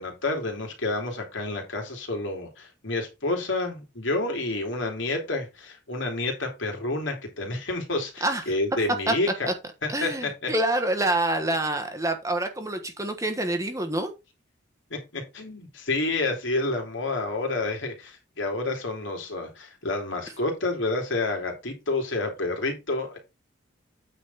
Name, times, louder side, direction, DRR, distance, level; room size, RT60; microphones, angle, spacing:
voice 1, 0.0-9.5 9.8-10.5 14.9-23.2, left 2 dB, 70° left, 3.0 m, -29 dB
voice 2, 9.9-14.1, right 1 dB, 15° right, 1.2 m, -26 dB
9.0 x 4.2 x 5.4 m
head